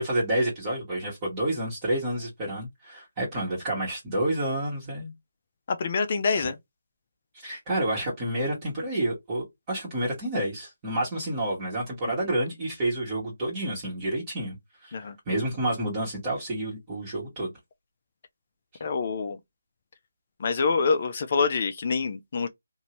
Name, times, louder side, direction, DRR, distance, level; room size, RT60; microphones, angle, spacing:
voice 1, 0.0-5.1 6.4-6.5 7.4-14.6 14.8-15.0 15.3-17.5, right 1 dB, 20° right, 1.4 m, -29 dB
voice 2, 5.7-6.6 14.9-15.2 18.8-19.4 20.4-22.5, left 4 dB, 40° left, 0.5 m, -26 dB
2.7 x 2.6 x 2.9 m
figure-of-eight pair, 165°, 0 cm